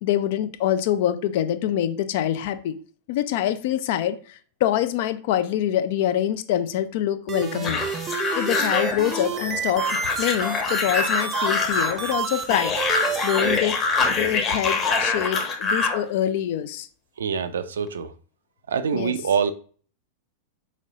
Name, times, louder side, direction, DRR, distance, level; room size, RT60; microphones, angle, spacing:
voice 1, 0.0-2.8 3.1-7.8 8.4-12.8 13.2-13.8 14.1-16.9 18.9-19.1, left 11 dB, 50° left, 0.4 m, -25 dB
sound 1, 7.3-13.6, right 6 dB, 25° right, 0.6 m, -29 dB
sound 2, 7.6-16.0, left 4 dB, 25° left, 1.1 m, -25 dB
voice 2, 17.2-18.1 18.7-19.5, right 6 dB, 65° right, 0.4 m, -25 dB
4.3 x 3.2 x 3.8 m
figure-of-eight pair, 90°, 0 cm